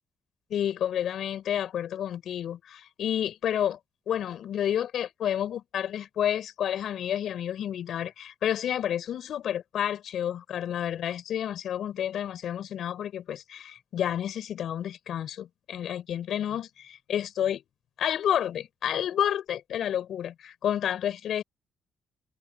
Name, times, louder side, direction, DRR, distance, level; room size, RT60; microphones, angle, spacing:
voice 1, 0.5-3.8 4.1-17.6 18.0-21.4, left 10 dB, 70° left, 7.1 m, -30 dB
cardioid pair, 90°, 0 cm